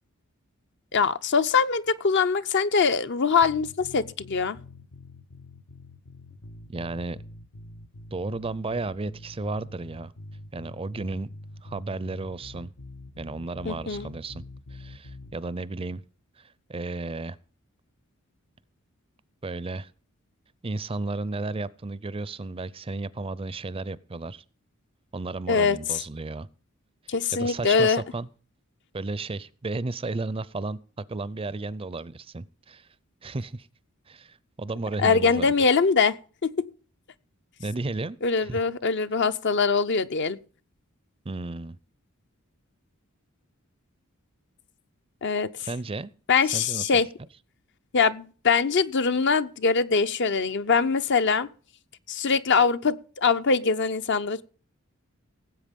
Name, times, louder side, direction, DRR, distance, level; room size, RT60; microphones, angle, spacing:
voice 1, 0.9-4.6 13.6-14.1 25.5-25.8 27.1-28.0 35.0-36.5 38.2-40.4 45.2-45.5 46.3-47.1 47.9-51.5 52.1-54.4, left 5 dB, 55° left, 0.7 m, -23 dB
sound 1, 3.4-15.4, left 2 dB, 85° left, 1.0 m, -45 dB
voice 2, 6.7-7.2 8.1-10.1 10.5-11.3 11.6-12.7 13.2-14.4 14.7-16.0 16.4-17.4 19.4-19.9 20.6-24.4 25.1-26.5 27.3-28.3 28.9-30.8 31.1-32.9 33.2-33.7 34.1-35.5 37.6-38.6 41.3-41.8 45.6-46.1 46.5-46.9, right 3 dB, 25° right, 0.5 m, -33 dB
18.0 x 8.1 x 5.3 m
head